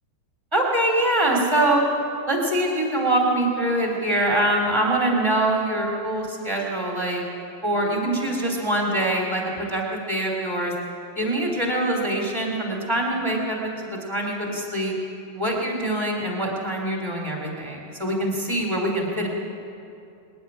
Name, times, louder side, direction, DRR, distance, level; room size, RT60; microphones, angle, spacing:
voice 1, 0.5-1.8 2.3-7.2 7.6-10.7 11.1-14.9 15.3-19.3, right 1 dB, 10° right, -1 dB, 2.1 m, -24 dB
21.0 x 13.0 x 9.9 m, 2.6 s
omnidirectional pair, 5.1 m